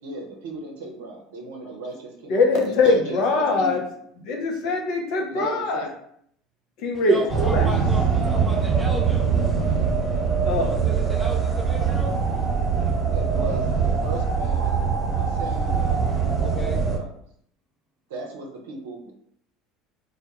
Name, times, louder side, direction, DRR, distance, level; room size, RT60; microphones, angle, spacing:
voice 1, 0.0-2.4 2.6-3.7 5.3-5.9 7.1-7.2 7.6-7.8 13.1-14.8 15.1-16.0 16.3-17.1 18.1-19.1, right 2 dB, 70° right, 0 dB, 0.6 m, -36 dB
voice 2, 2.3-3.8 4.2-5.9 6.8-7.7 10.4-10.7, left 3 dB, 60° left, 2 dB, 0.6 m, -22 dB
voice 3, 6.9-9.5 10.7-12.2 16.4-16.8, right 1 dB, 10° right, 1 dB, 0.6 m, -35 dB
sound 1, 7.3-17.0, right 6 dB, 30° right, 1.1 m, -23 dB
2.2 x 2.2 x 2.8 m, 0.66 s
hypercardioid pair, 70°, 0 cm